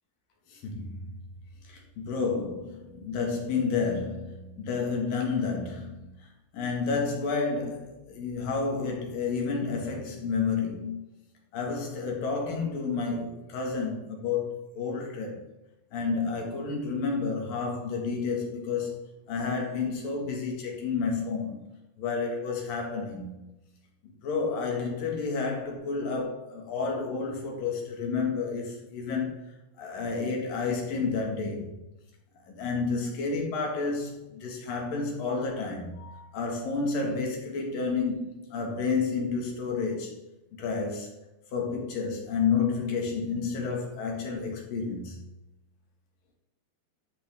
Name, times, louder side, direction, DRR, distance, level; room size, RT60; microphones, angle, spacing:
voice 1, 0.5-1.1 1.7-6.1 6.5-11.1 11.5-15.4 15.9-19.0 19.3-21.6 22.0-23.4 24.2-29.4 29.8-31.7 32.5-40.1 40.5-41.1 41.5-45.2, left 4 dB, 65° left, 3.6 m, -30 dB
12.0 x 8.2 x 3.6 m
omnidirectional pair, 4.4 m